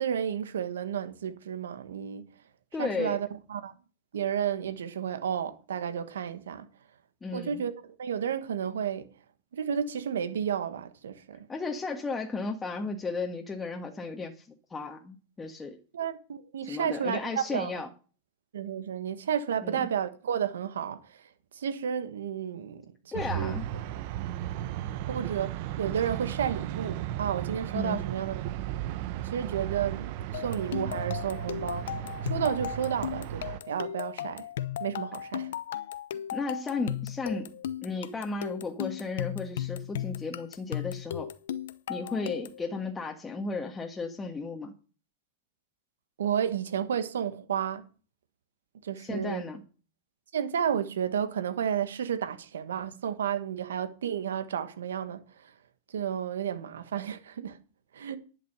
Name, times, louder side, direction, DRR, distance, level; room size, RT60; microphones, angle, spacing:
voice 1, 0.0-2.3 2.8-3.7 4.1-6.7 7.3-9.1 9.5-11.5 15.9-17.8 18.5-21.2 21.5-23.5 25.1-28.4 29.2-31.9 32.2-34.4 34.8-35.5 46.2-47.8 48.8-49.4 50.3-55.5 55.9-57.6 57.9-58.2, right 8 dB, 85° right, 1.4 m, -32 dB
voice 2, 2.7-3.2 7.2-7.6 11.5-14.4 14.7-15.8 16.7-17.9 19.6-19.9 23.1-23.6 27.7-28.0 36.3-37.5 37.8-41.3 41.9-44.7 49.0-49.6, left 3 dB, 15° left, 1.7 m, -34 dB
sound 1, 23.1-33.6, right 12 dB, 60° right, 0.9 m, -35 dB
sound 2, 30.3-42.6, left 10 dB, 80° left, 0.8 m, -36 dB
11.0 x 6.2 x 6.9 m
hypercardioid pair, 115°, 0 cm